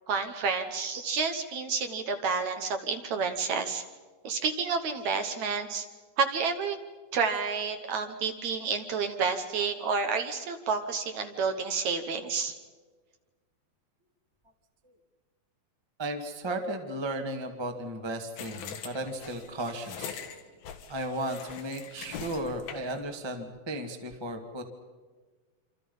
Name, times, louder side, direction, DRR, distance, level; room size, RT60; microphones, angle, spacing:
voice 1, 0.1-3.8 4.2-5.9 6.2-6.8 7.1-12.5, right 5 dB, 65° right, 7 dB, 2.1 m, -30 dB
voice 2, 16.0-20.2 20.9-24.6, right 1 dB, 15° right, 4 dB, 0.9 m, -35 dB
sound 1, 18.4-23.0, left 7 dB, 90° left, 3.6 m, -42 dB
27.0 x 26.5 x 5.5 m, 1.4 s
omnidirectional pair, 4.1 m